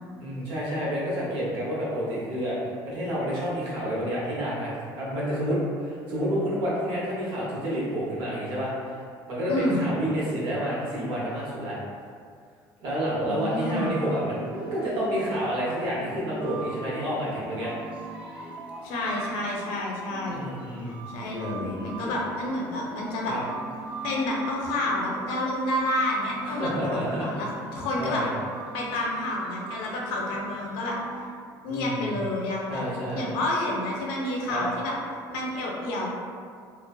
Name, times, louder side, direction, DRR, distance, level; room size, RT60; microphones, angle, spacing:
voice 1, 0.2-2.6 2.8-9.0 9.3-11.8 12.8-17.7 20.3-21.0 22.0-22.1 23.3-23.4 26.4-27.3 28.0-28.3 31.6-32.1 32.7-33.3 34.4-34.7, equal, 70° right, -6 dB, 0.8 m, -29 dB
voice 2, 9.5-9.8 13.2-13.9 18.8-20.5 21.1-23.4 24.0-28.2 28.7-31.0 31.6-32.8 33.1-35.0 35.3-36.1, left 1 dB, 75° left, -2 dB, 0.5 m, -29 dB
sound 1, 13.5-31.3, right 2 dB, 15° right, 0.3 m, -41 dB
2.4 x 2.3 x 2.2 m, 2.1 s
cardioid pair, 135°, 9 cm